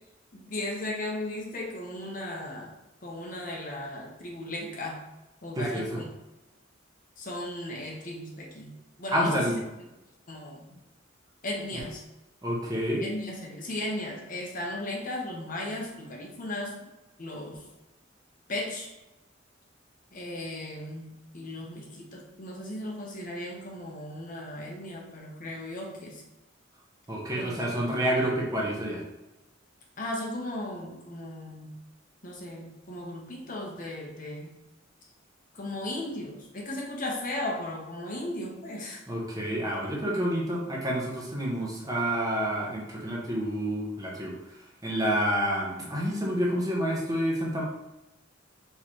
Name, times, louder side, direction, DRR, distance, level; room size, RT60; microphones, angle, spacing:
voice 1, 0.3-2.7 3.0-5.0 5.4-6.0 7.2-8.7 9.0-9.6 10.3-10.6 11.4-12.0 13.0-16.9 17.2-17.6 18.5-18.9 20.1-26.2 27.3-27.8 30.0-31.7 32.2-34.5 35.5-39.0, left 1 dB, 45° left, -1 dB, 0.9 m, -36 dB
voice 2, 5.6-6.0 9.1-9.6 12.4-13.1 27.1-29.0 39.1-44.3 44.8-47.6, equal, 20° right, -3 dB, 0.9 m, -28 dB
4.3 x 3.8 x 3.0 m, 0.99 s
head